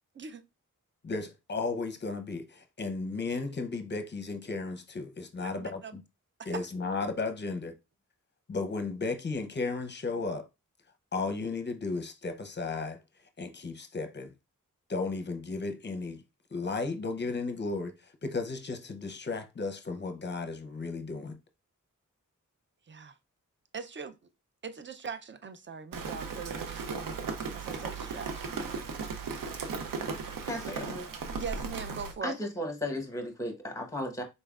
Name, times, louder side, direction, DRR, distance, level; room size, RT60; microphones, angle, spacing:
voice 1, 1.0-6.0 6.5-7.7 8.5-10.5 11.1-13.0 13.4-14.3 14.9-16.2 16.5-21.4, left 3 dB, 35° left, 0.6 m, -34 dB
voice 2, 5.4-6.0 6.4-6.6 22.9-23.2 23.7-24.2 24.6-28.8 29.1-29.5 31.4-32.3, right 6 dB, 35° right, 0.5 m, -42 dB
Rain, 25.9-32.1, right 5 dB, 85° right, 0.6 m, -36 dB
voice 3, 30.4-31.4 32.2-34.2, left 1 dB, 10° left, 1.0 m, -35 dB
4.2 x 3.3 x 2.3 m
wide cardioid pair, 75°, 32 cm